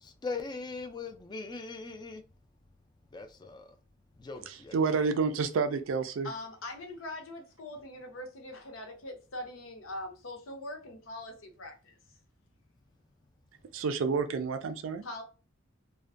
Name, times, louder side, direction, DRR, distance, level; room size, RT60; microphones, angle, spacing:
voice 1, 0.0-2.5 3.1-3.8 4.2-5.0, left 4 dB, 20° left, 0.3 m, -41 dB
voice 2, 4.7-6.3 13.7-15.0, right 5 dB, 75° right, 0.4 m, -29 dB
voice 3, 6.2-12.0 15.0-15.2, left 1 dB, 90° left, 0.7 m, -42 dB
2.5 x 2.2 x 2.4 m
head